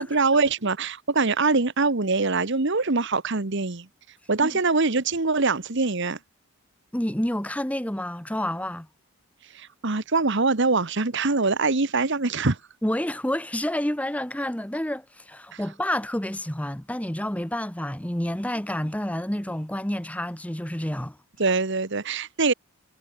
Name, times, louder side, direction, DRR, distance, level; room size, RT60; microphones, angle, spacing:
voice 1, 0.0-3.9 4.3-6.2 9.5-12.6 15.5-15.6 21.4-22.5, right 3 dB, 55° right, 1.3 m, -23 dB
voice 2, 6.9-8.9 12.8-21.2, left 1 dB, 5° left, 1.1 m, -29 dB
head